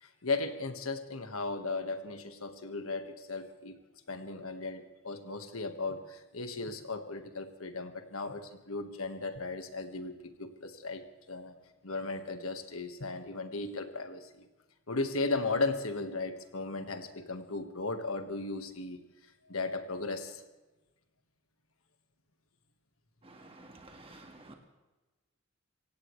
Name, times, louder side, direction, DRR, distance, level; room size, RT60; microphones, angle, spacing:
voice 1, 0.0-3.8 4.1-11.5 11.8-14.4 14.9-19.0 19.4-20.4, left 3 dB, 75° left, 7 dB, 1.5 m, -36 dB
voice 2, 23.2-24.5, right 2 dB, 25° right, 3 dB, 1.6 m, -52 dB
25.0 x 17.5 x 3.2 m, 1.1 s
head